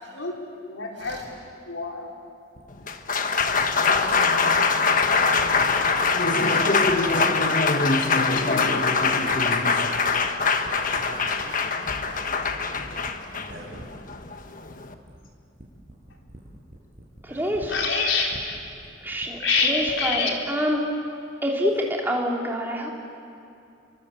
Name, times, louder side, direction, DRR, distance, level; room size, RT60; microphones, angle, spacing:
voice 1, 0.0-2.1 8.3-8.8 17.7-18.6 19.4-20.4, left 4 dB, 70° left, 0 dB, 4.3 m, -27 dB
sound 1, 2.5-20.3, equal, 35° right, 6.5 m, -46 dB
Applause, 2.7-14.9, left 4 dB, 40° left, 1.4 m, -22 dB
voice 2, 3.4-7.4 8.3-9.9 10.7-11.6 11.9-12.7 13.4-13.7 17.2-17.4, right 1 dB, 60° right, -1 dB, 7.5 m, -41 dB
voice 3, 17.2-17.8 19.0-20.8 21.4-22.9, equal, 10° right, -1 dB, 3.4 m, -26 dB
29.5 x 24.0 x 8.4 m, 2.6 s
head